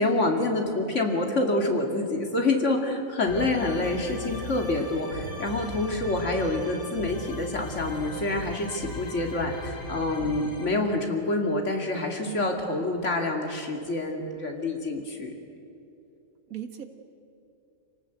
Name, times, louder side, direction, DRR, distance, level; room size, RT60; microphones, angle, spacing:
voice 1, 0.0-15.3, left 2 dB, 60° left, 2 dB, 2.7 m, -27 dB
sound 1, 3.3-10.6, left 2 dB, 75° left, 3.1 m, -38 dB
voice 2, 12.3-12.9 16.5-16.8, right 10 dB, 80° right, 6 dB, 1.9 m, -38 dB
25.5 x 19.0 x 8.0 m, 2.7 s
omnidirectional pair, 1.5 m